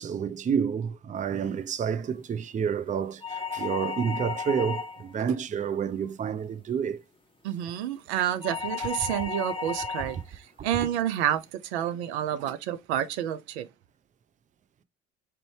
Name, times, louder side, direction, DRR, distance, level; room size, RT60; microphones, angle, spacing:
voice 1, 0.0-7.0, right 7 dB, 25° right, 0.5 m, -29 dB
sound 1, 3.2-5.1 8.4-10.2, left 5 dB, 15° left, 0.7 m, -34 dB
voice 2, 7.4-13.7, right 11 dB, 80° right, 0.6 m, -29 dB
4.4 x 2.6 x 3.1 m
hypercardioid pair, 65°, 33 cm